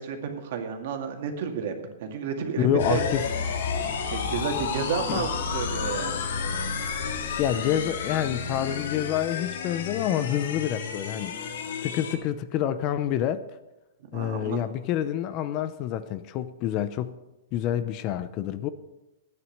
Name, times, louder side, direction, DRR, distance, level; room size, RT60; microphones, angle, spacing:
voice 1, 0.0-1.7 2.0-3.0 4.0-6.1 14.1-14.6, right 7 dB, 60° right, 2.1 m, -31 dB
voice 2, 2.6-3.3 5.1-5.3 7.4-11.4 11.8-13.4 14.1-17.1 17.5-18.7, left 11 dB, 35° left, 0.7 m, -27 dB
sound 1, 2.8-12.2, left 6 dB, 70° left, 1.9 m, -31 dB
12.0 x 9.5 x 6.6 m
hypercardioid pair, 160°, 0 cm